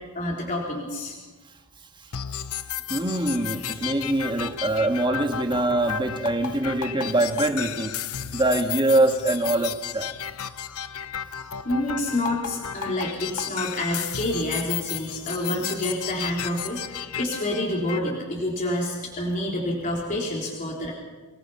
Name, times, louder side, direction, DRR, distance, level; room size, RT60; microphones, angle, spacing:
voice 1, 0.1-1.1 11.4-20.9, left 1 dB, 40° left, -3 dB, 3.8 m, -28 dB
sound 1, 2.1-18.1, left 9 dB, 75° left, 0.8 m, -34 dB
voice 2, 2.9-8.0 8.3-10.1, right 2 dB, 20° right, 5 dB, 1.8 m, -23 dB
25.5 x 20.0 x 5.7 m, 1.3 s
head